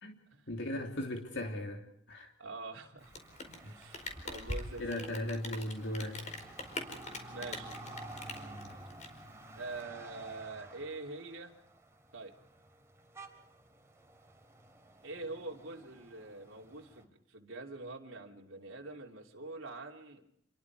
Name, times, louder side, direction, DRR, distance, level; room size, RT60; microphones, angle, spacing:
voice 1, 0.5-2.3 3.6-3.7 4.8-6.2, left 1 dB, 60° left, 2 dB, 2.8 m, -37 dB
voice 2, 2.4-3.1 3.6-5.1 7.3-7.7 9.6-11.5 12.1-12.3 15.0-20.3, right 3 dB, 75° right, 0 dB, 3.0 m, -45 dB
Rain, 3.0-9.8, left 2 dB, 35° left, 4.7 m, -43 dB
sound 1, 3.0-17.0, right 2 dB, 15° right, 3.1 m, -52 dB
28.5 x 23.0 x 4.9 m, 0.76 s
head